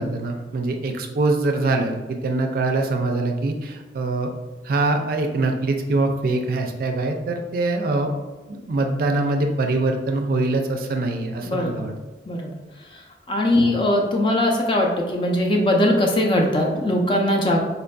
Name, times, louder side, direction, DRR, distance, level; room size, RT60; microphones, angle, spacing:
voice 1, 0.0-4.3 4.6-8.1 8.5-11.9 13.6-13.7, right 2 dB, 55° right, 4 dB, 0.4 m, -23 dB
voice 2, 11.4-11.9 12.3-12.5 12.8-17.6, left 1 dB, 30° left, 1 dB, 0.4 m, -21 dB
4.1 x 2.5 x 2.2 m, 1.2 s
head